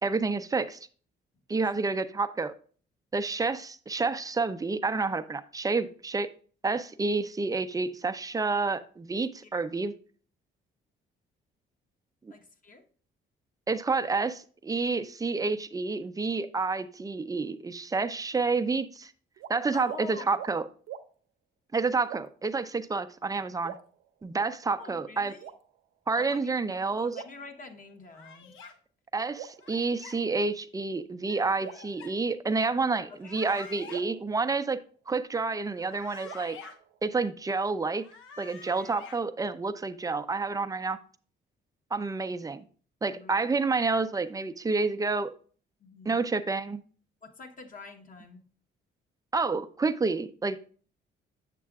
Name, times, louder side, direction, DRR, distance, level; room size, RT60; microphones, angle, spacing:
voice 1, 0.0-0.8 1.5-2.5 3.1-6.3 6.6-9.9 12.2-12.3 13.7-19.1 19.5-20.6 21.7-23.7 24.2-25.3 26.1-27.1 29.1-34.8 35.1-36.6 37.0-38.0 38.4-41.0 41.9-42.6 43.0-45.3 46.1-46.8 49.3-50.6, right 4 dB, 20° right, 9 dB, 0.5 m, -29 dB
voice 2, 12.3-12.8 19.7-20.4 24.7-25.5 26.2-28.6 33.1-33.3 43.1-43.3 45.8-46.2 47.2-48.4, left 3 dB, 45° left, 4 dB, 1.1 m, -46 dB
sound 1, 19.4-19.5 19.8-20.0 20.4-20.6 20.9-21.1 22.0-22.5 23.6-24.5 25.4-26.1 27.1-28.1 29.4-30.5 31.6-32.8 33.9-35.3 36.2-37.4, right 10 dB, 85° right, 0.6 m, -46 dB
sound 2, 28.1-28.7 29.6-30.2 31.3-32.1 33.1-34.0 35.7-36.7 37.9-39.2, left 5 dB, 80° left, 0.9 m, -48 dB
7.4 x 6.8 x 2.4 m, 0.42 s
cardioid pair, 90°, 20 cm